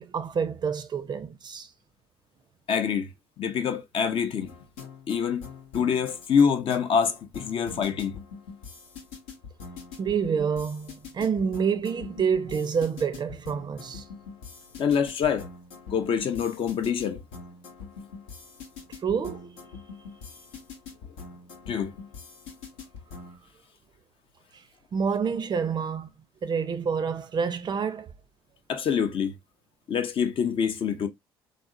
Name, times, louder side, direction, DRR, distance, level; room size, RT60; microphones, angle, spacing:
voice 1, 0.0-1.7 10.0-14.0 19.0-19.5 24.9-26.1 26.4-28.1, right 6 dB, 35° right, 0.5 m, -28 dB
voice 2, 2.7-3.1 3.4-4.6 5.1-5.4 5.7-8.2 14.8-15.5 15.9-17.2 21.7-21.9 28.7-29.3 29.9-31.1, left 7 dB, 45° left, 0.5 m, -25 dB
sound 1, 4.5-23.4, left 5 dB, 70° left, 0.8 m, -44 dB
3.4 x 2.0 x 2.5 m
figure-of-eight pair, 55°, 13 cm